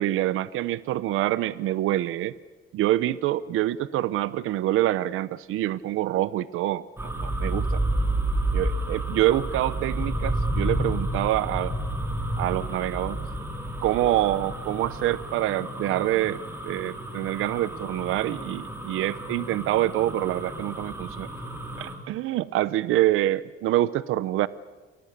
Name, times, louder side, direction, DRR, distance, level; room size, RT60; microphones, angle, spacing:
voice 1, 0.0-2.3 2.7-7.8 8.5-11.7 12.4-13.2 13.8-21.3 21.8-24.5, right 14 dB, 85° right, 17 dB, 0.8 m, -26 dB
sound 1, 7.0-22.0, right 1 dB, 10° right, 4.3 m, -30 dB
29.5 x 23.5 x 6.7 m, 1.3 s
cardioid pair, 145°, 21 cm